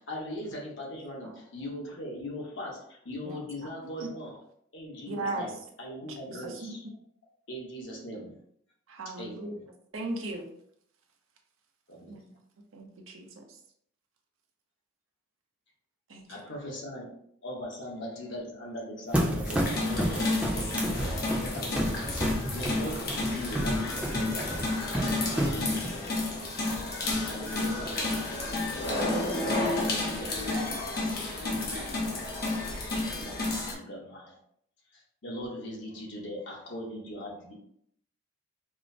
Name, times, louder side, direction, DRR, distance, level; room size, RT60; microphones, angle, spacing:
voice 1, 0.0-4.4 4.7-6.8 7.5-8.4 9.2-9.7 11.9-12.2 16.3-17.1 17.4-20.8 21.4-22.3 22.5-24.7 25.3-26.2 27.2-29.0 29.6-30.5 31.3-31.7 33.0-34.4 34.9-37.5, equal, 70° left, -3 dB, 1.0 m, -40 dB
voice 2, 5.1-5.5 6.3-6.8 8.9-9.6 9.9-10.5 12.1-12.3 12.7-13.6 16.1-16.3, right 2 dB, 90° right, 2 dB, 0.6 m, -37 dB
sound 1, 19.1-25.9, right 1 dB, 5° right, 0.5 m, -31 dB
sound 2, 19.4-33.7, left 2 dB, 50° left, 0.8 m, -31 dB
voice 3, 30.1-30.9 31.3-32.0, left 1 dB, 70° right, -1 dB, 0.9 m, -42 dB
4.7 x 2.0 x 2.5 m, 0.69 s
head